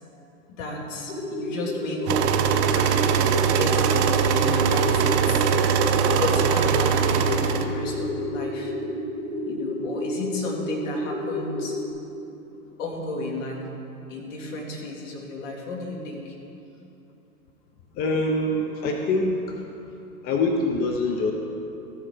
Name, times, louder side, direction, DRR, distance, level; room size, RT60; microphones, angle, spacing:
voice 1, 0.6-2.5 2.7-5.4 5.9-8.7 9.4-11.8 12.8-13.6 14.1-16.3, left 2 dB, 55° left, -1 dB, 2.5 m, -33 dB
sound 1, 1.1-11.9, left 1 dB, 85° left, 2.5 m, -31 dB
sound 2, 2.1-7.7, right 7 dB, 45° right, 0.8 m, -21 dB
voice 2, 18.0-19.7 20.2-21.3, left 2 dB, 20° left, 2 dB, 0.6 m, -24 dB
14.5 x 7.3 x 5.0 m, 2.8 s
hypercardioid pair, 120°, 46 cm